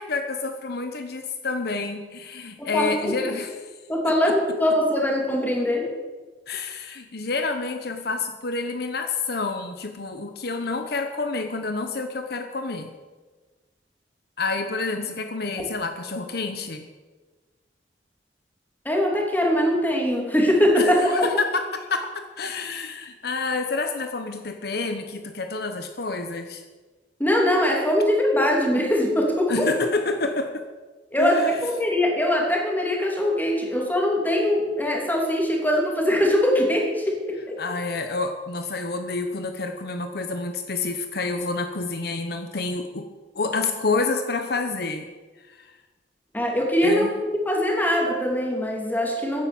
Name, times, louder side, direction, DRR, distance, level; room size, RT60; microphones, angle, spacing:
voice 1, 0.0-3.7 4.0-4.3 6.5-12.9 14.4-16.9 20.8-26.6 29.5-30.6 31.2-31.6 37.6-43.1 43.3-45.1 45.4-45.8 46.8-47.1, left 3 dB, 60° left, 6 dB, 1.1 m, -28 dB
voice 2, 2.6-3.4 3.9-5.9 18.8-21.3 27.2-29.7 31.1-37.6 46.3-47.1 47.3-49.5, left 1 dB, 10° left, 0 dB, 3.1 m, -22 dB
16.0 x 10.5 x 7.3 m, 1.3 s
head